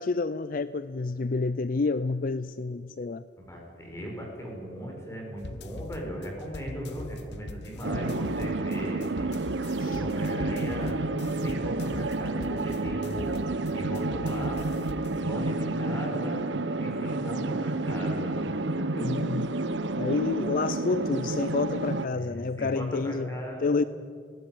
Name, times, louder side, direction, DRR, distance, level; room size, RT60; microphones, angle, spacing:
voice 1, 0.0-3.2 7.9-8.3 9.8-10.0 19.0-19.5 20.0-23.3 23.6-23.8, left 3 dB, 50° left, 0.4 m, -29 dB
voice 2, 3.4-9.3 9.8-11.0 11.4-13.3 13.7-14.7 15.2-16.4 16.8-18.6 18.9-19.1 22.1-23.8, equal, 15° left, 6.0 m, -38 dB
sound 1, 5.4-15.2, left 2 dB, 65° left, 1.1 m, -42 dB
sound 2, 7.8-22.1, right 2 dB, 85° right, 0.9 m, -30 dB
19.0 x 18.0 x 9.4 m
head